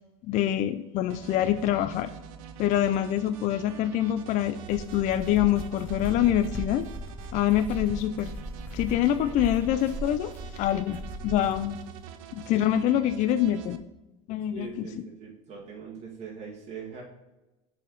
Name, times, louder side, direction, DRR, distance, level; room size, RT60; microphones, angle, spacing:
voice 1, 0.2-2.1 2.6-6.9 7.3-8.3 8.7-11.8 12.3-13.8 14.3-14.9, left 11 dB, 45° left, 11 dB, 0.4 m, -25 dB
sound 1, 1.1-13.8, right 8 dB, 80° right, 0.6 m, -45 dB
sound 2, 4.5-11.7, equal, 10° left, 1.4 m, -38 dB
voice 2, 14.5-17.0, right 5 dB, 35° right, -3 dB, 1.9 m, -41 dB
6.4 x 4.2 x 3.8 m, 1.0 s
supercardioid pair, 110°, 17 cm